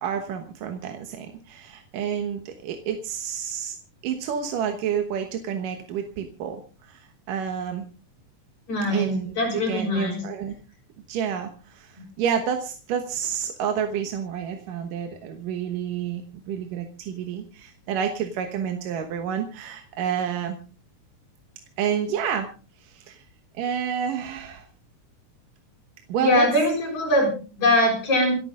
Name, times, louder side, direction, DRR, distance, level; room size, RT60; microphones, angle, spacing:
voice 1, 0.0-3.8 4.0-7.9 8.9-10.5 11.1-16.2 16.5-20.6 21.8-22.5 22.8-23.2 23.5-24.6 26.1-26.5, right 8 dB, 80° right, 5 dB, 2.8 m, -29 dB
voice 2, 8.7-10.2 26.1-28.4, left 1 dB, 60° left, 1 dB, 7.8 m, -22 dB
27.5 x 9.7 x 3.8 m, 0.36 s
omnidirectional pair, 3.8 m